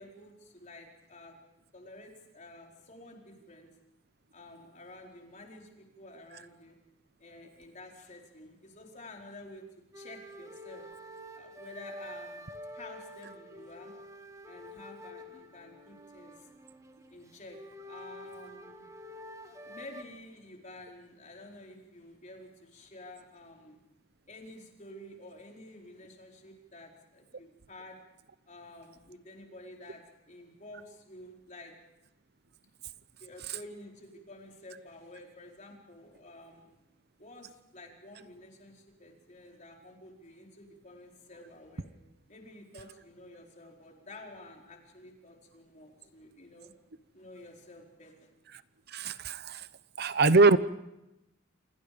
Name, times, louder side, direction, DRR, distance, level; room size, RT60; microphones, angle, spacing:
voice 1, 0.0-1.3 1.7-3.7 4.3-6.8 7.2-9.6 9.9-10.9 11.3-12.4 12.7-13.9 14.5-16.5 17.1-18.8 19.7-23.8 24.3-28.0 28.5-31.7 33.2-36.8 37.2-41.9 42.3-46.7 47.1-48.3, left 1 dB, 40° left, 1 dB, 4.7 m, -50 dB
sound 1, 9.9-20.0, equal, 15° right, 1.6 m, -48 dB
voice 2, 48.9-49.7 50.0-50.6, right 3 dB, 55° right, 15 dB, 0.9 m, -22 dB
28.0 x 26.5 x 5.2 m, 0.89 s
head